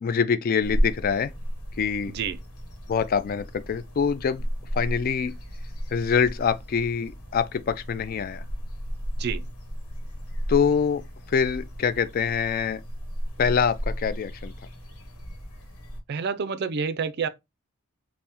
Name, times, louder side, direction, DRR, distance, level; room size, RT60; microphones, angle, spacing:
voice 1, 0.0-1.3 1.8-2.1 2.9-4.4 4.7-5.3 5.9-8.4 10.5-11.0 11.3-12.8 13.4-14.5, left 6 dB, 40° left, 0.3 m, -25 dB
sound 1, 0.6-16.0, equal, 85° left, 1.0 m, -34 dB
voice 2, 2.1-2.4 9.2-9.4 16.1-17.3, right 6 dB, 50° right, 0.4 m, -28 dB
5.4 x 2.1 x 2.9 m
head